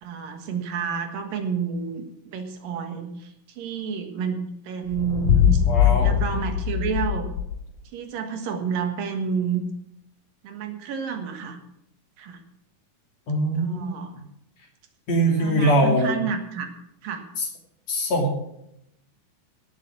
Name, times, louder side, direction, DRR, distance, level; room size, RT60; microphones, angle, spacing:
voice 1, 0.0-7.3 7.9-9.6 10.4-11.6 12.2-12.4 13.6-14.1 15.4-16.7 17.0-17.2, right 6 dB, 80° right, 5 dB, 3.3 m, -30 dB
sound 1, 4.9-7.7, left 9 dB, 80° left, 1.4 m, -21 dB
voice 2, 5.7-6.2 13.3-13.9 15.1-16.2 17.4-17.5 17.9-18.3, right 1 dB, 55° left, 1 dB, 3.7 m, -22 dB
17.5 x 6.7 x 7.3 m, 0.78 s
omnidirectional pair, 3.9 m